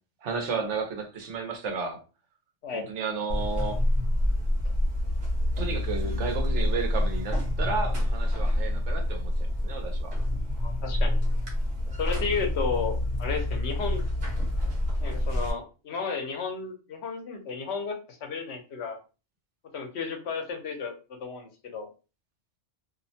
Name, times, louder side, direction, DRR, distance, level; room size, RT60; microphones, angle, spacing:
voice 1, 0.2-2.0 2.7-3.8 5.6-10.1, right 4 dB, 90° right, 4 dB, 1.0 m, -33 dB
Buzz, 3.3-15.5, left 1 dB, 50° right, 1.0 m, -27 dB
voice 2, 10.6-11.2 12.0-14.0 15.0-19.0 19.7-21.9, left 5 dB, 70° left, 4 dB, 0.9 m, -33 dB
2.6 x 2.1 x 2.7 m, 0.33 s
omnidirectional pair, 1.2 m